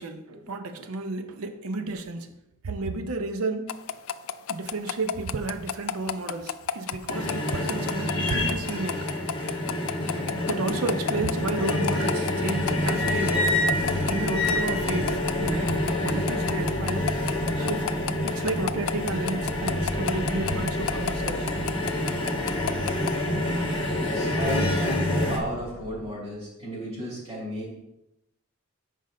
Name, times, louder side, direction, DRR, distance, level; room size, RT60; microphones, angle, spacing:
voice 1, 0.0-2.4 2.6-3.8 4.5-9.1 10.5-13.6 14.1-17.1 17.6-17.9 18.1-21.5, right 3 dB, 80° right, 7 dB, 0.6 m, -32 dB
sound 1, 3.7-23.1, left 9 dB, 70° left, 0.3 m, -31 dB
sound 2, 7.1-25.4, left 1 dB, 25° left, 1.3 m, -27 dB
sound 3, 11.9-26.1, equal, ahead, 0.6 m, -42 dB
voice 2, 24.0-27.8, equal, 30° right, -5 dB, 2.6 m, -34 dB
7.6 x 5.1 x 3.7 m, 0.88 s
head